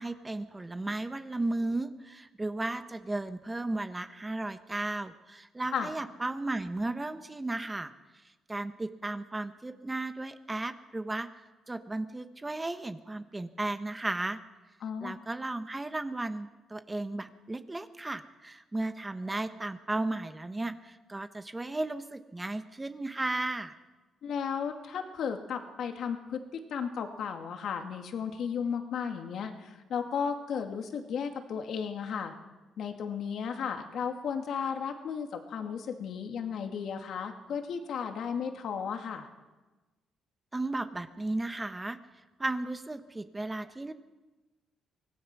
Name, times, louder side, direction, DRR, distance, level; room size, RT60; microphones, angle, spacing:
voice 1, 0.0-7.9 8.5-11.3 11.7-14.4 15.0-23.8 40.5-42.0 42.4-43.9, right 2 dB, 15° right, 9 dB, 1.2 m, -35 dB
voice 2, 14.8-15.2 24.2-32.3 32.8-39.3, left 7 dB, 70° left, 4 dB, 2.5 m, -34 dB
25.0 x 17.5 x 6.2 m, 1.2 s
cardioid pair, 90°, 0 cm